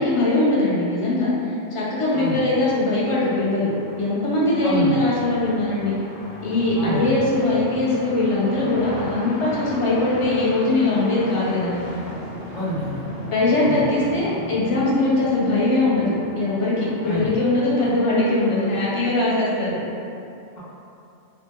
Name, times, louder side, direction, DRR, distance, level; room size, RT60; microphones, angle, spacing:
voice 1, 0.0-3.7 4.0-6.0 6.4-11.7 13.3-19.8, left 2 dB, 35° left, -7 dB, 0.5 m, -21 dB
sound 1, 2.4-19.0, left 1 dB, 65° left, 0.9 m, -37 dB
voice 2, 4.6-5.0 6.8-7.0 12.5-13.1 13.6-13.8 17.0-17.3, left 1 dB, 80° left, -8 dB, 1.3 m, -27 dB
3.8 x 2.1 x 3.5 m, 2.8 s
omnidirectional pair, 1.3 m